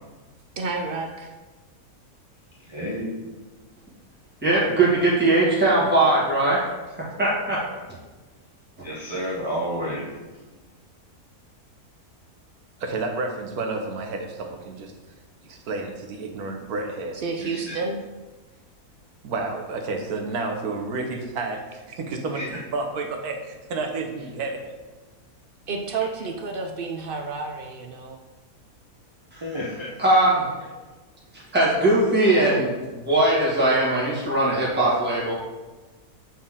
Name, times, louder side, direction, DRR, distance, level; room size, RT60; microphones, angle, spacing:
voice 1, 0.6-1.3 17.1-18.0 25.7-28.2, right 4 dB, 65° right, 3 dB, 0.5 m, -30 dB
voice 2, 2.6-3.3 8.8-10.2 17.4-17.8 22.3-22.5 29.4-30.0, equal, 25° right, -5 dB, 0.7 m, -30 dB
voice 3, 4.4-6.6 7.2-7.6 29.3-29.4 30.0-30.5 31.5-35.3, right 2 dB, 5° right, -7 dB, 1.7 m, -20 dB
voice 4, 12.8-14.9 15.4-17.2 19.2-24.7, right 3 dB, 80° right, 4 dB, 1.3 m, -30 dB
7.4 x 4.2 x 3.6 m, 1.2 s
omnidirectional pair, 1.6 m